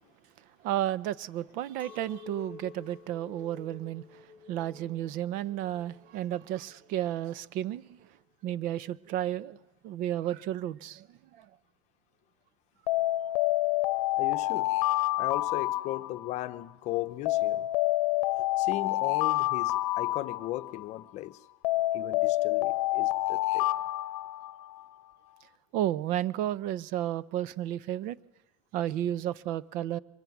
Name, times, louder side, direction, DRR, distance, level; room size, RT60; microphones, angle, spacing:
voice 1, 0.6-4.2 4.5-8.1 8.4-9.6 9.8-11.5 13.0-13.1 25.7-28.2 28.7-30.0, right 12 dB, 50° right, 0.8 m, -32 dB
Chink clink, 1.8-7.2, left 5 dB, 10° left, 4.1 m, -51 dB
Alarm, 12.9-16.6 17.2-21.0 21.6-24.9, left 17 dB, 75° left, 0.8 m, -28 dB
voice 2, 14.2-14.8 15.2-17.7 18.6-21.4 21.9-23.7, left 15 dB, 40° left, 0.9 m, -37 dB
24.0 x 21.0 x 9.4 m
supercardioid pair, 150°, 18 cm